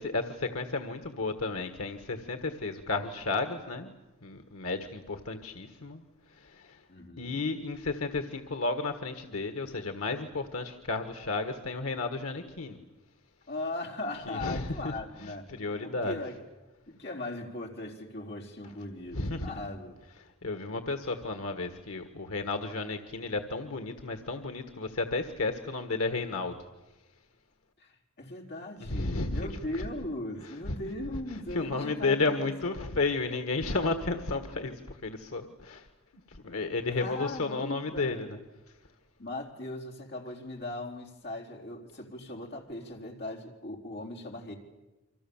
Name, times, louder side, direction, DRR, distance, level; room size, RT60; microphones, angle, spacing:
voice 1, 0.0-3.9 4.2-6.0 6.4-6.8 7.2-12.8 14.3-14.9 15.5-16.1 19.1-19.5 20.4-26.6 28.9-29.5 29.8-29.9 30.7-30.8 31.5-35.8 36.3-38.4, left 3 dB, 85° left, 7 dB, 1.6 m, -32 dB
voice 2, 6.9-7.4 13.5-16.4 16.9-20.0 27.8-33.0 36.9-38.3 39.2-44.5, left 2 dB, 50° left, 0 dB, 4.0 m, -39 dB
29.0 x 25.0 x 7.2 m, 1.1 s
head